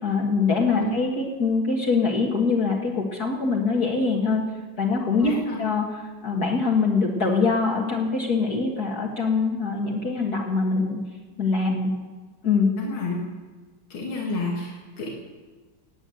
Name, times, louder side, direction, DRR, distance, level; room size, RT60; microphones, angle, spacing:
voice 1, 0.0-4.5 4.8-11.0 11.4-11.9 12.4-12.7, left 4 dB, 50° left, -2 dB, 2.3 m, -23 dB
voice 2, 5.2-5.6 12.8-13.2 13.9-15.1, left 3 dB, 85° left, -2 dB, 2.9 m, -30 dB
14.5 x 8.9 x 9.2 m, 1.4 s
omnidirectional pair, 2.2 m